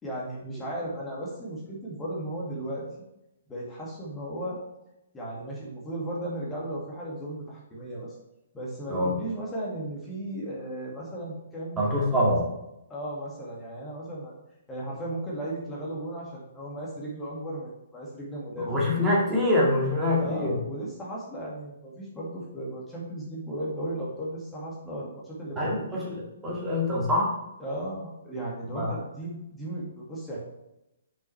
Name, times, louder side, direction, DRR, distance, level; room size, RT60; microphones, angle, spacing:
voice 1, 0.0-2.9 3.5-4.6 5.1-8.1 8.5-11.8 12.9-14.4 14.7-18.7 20.1-26.0 27.6-30.4, right 1 dB, 10° left, -5 dB, 2.1 m, -35 dB
voice 2, 11.8-12.5 18.6-20.5 25.6-27.3 28.7-29.0, left 1 dB, 10° right, -5 dB, 2.2 m, -25 dB
9.3 x 5.5 x 3.4 m, 0.87 s
figure-of-eight pair, 125°, 0 cm